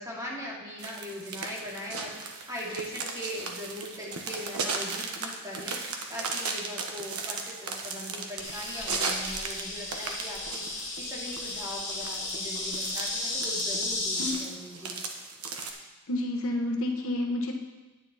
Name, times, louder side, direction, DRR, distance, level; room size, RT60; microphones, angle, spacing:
voice 1, 0.0-14.9, equal, 15° right, -5 dB, 2.6 m, -40 dB
sound 1, 0.8-15.7, right 4 dB, 90° right, 1.2 m, -36 dB
Insect, 8.4-14.3, left 2 dB, 35° left, 2.9 m, -34 dB
voice 2, 16.1-17.5, left 1 dB, 65° left, 2 dB, 1.2 m, -29 dB
9.7 x 9.5 x 4.1 m, 1.1 s
head